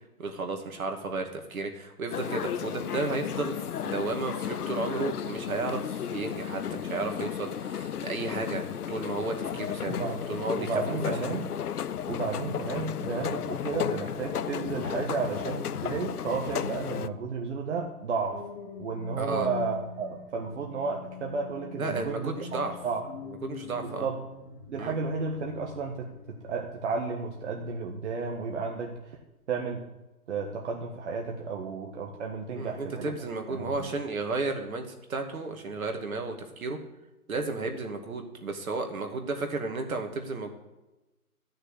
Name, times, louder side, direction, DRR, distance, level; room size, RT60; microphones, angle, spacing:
voice 1, 0.2-10.0 10.3-11.3 19.1-19.5 21.7-22.7 23.3-24.1 24.8-24.9 32.5-36.8 37.3-40.5, right 3 dB, 65° right, 4 dB, 2.5 m, -33 dB
sound 1, 2.1-17.1, left 9 dB, 80° left, 0.7 m, -34 dB
voice 2, 9.9-10.2 10.6-11.5 12.1-18.5 18.8-22.3 22.8-23.0 23.8-24.2 24.7-29.1 29.5-29.8 30.3-33.1 33.5-33.9, right 4 dB, 50° right, 1 dB, 1.7 m, -32 dB
sound 2, 18.1-28.4 28.9-29.2, left 9 dB, 35° left, 1.5 m, -45 dB
14.0 x 6.6 x 8.3 m, 1.0 s
hypercardioid pair, 145°, 45 cm